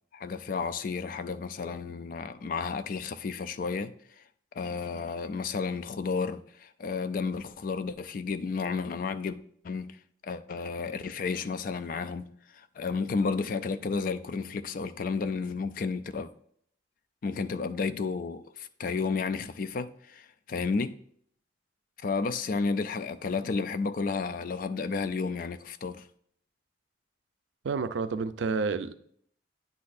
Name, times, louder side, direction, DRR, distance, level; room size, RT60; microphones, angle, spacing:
voice 1, 0.1-3.9 4.6-9.4 9.6-10.0 10.2-12.3 12.5-16.3 17.2-20.9 22.0-26.0, left 4 dB, 50° left, 0.3 m, -32 dB
voice 2, 27.6-29.0, right 4 dB, 75° right, 0.4 m, -30 dB
9.4 x 4.1 x 2.5 m
head